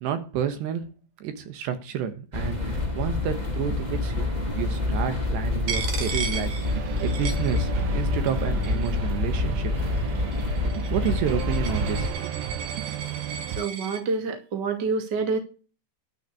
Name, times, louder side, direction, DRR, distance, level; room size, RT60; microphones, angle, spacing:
voice 1, 0.0-0.9 1.2-4.3 4.5-9.7 10.9-12.5, right 9 dB, 75° right, 9 dB, 3.4 m, -30 dB
sound 1, 2.3-12.1, left 3 dB, 10° right, 2.3 m, -27 dB
Coin (dropping), 5.7-8.0 8.3-9.1 9.8-14.0, right 6 dB, 55° right, 2.3 m, -36 dB
sound 2, 6.6-13.6, right 10 dB, 90° right, 3.4 m, -34 dB
voice 2, 13.6-15.4, right 4 dB, 30° right, 5 dB, 2.2 m, -27 dB
12.5 x 6.0 x 8.4 m, 0.35 s
omnidirectional pair, 5.4 m